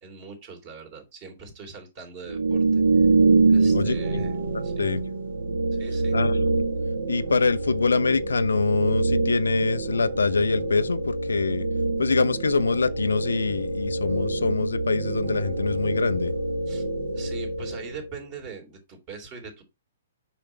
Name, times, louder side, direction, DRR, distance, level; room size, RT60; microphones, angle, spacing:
voice 1, 0.0-2.8 3.5-4.3 4.6-4.9 5.8-6.2 16.7-16.8 17.1-19.6, right 4 dB, 35° right, 3.0 m, -41 dB
sound 1, 2.3-18.0, right 3 dB, 70° right, 1.1 m, -25 dB
voice 2, 3.7-4.2 4.5-5.0 6.1-6.6 7.1-11.7 12.0-16.3, left 4 dB, 75° left, 0.5 m, -24 dB
6.7 x 5.7 x 3.3 m
figure-of-eight pair, 120°, 0 cm